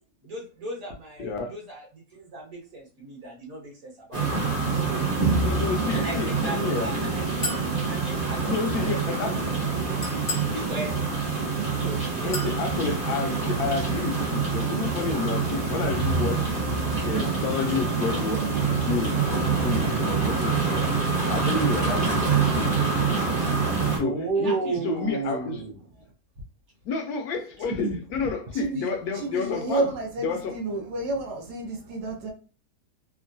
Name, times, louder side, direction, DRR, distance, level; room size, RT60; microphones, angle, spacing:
voice 1, 0.2-4.3 4.6-5.1 5.9-7.5 7.9-8.9 9.2-9.3 9.6-10.2 10.5-10.9 11.7-12.3 24.3-24.8, right 1 dB, 60° right, 1.6 m, -38 dB
voice 2, 1.2-1.5 5.4-6.9 8.4-9.6 12.2-16.5 17.0-21.0 21.3-23.4 23.7-24.6 24.8-25.7 26.8-29.9 30.2-30.6, left 5 dB, 75° left, 1.0 m, -30 dB
sound 1, 4.1-24.0, right 4 dB, 40° right, 1.0 m, -26 dB
Chink clink, 7.4-7.7 10.0-10.6 12.3-12.6, left 2 dB, 15° left, 0.6 m, -32 dB
voice 3, 24.0-25.7 27.6-28.0 28.5-32.3, right 3 dB, 90° right, 1.4 m, -29 dB
3.6 x 2.1 x 2.6 m
omnidirectional pair, 1.7 m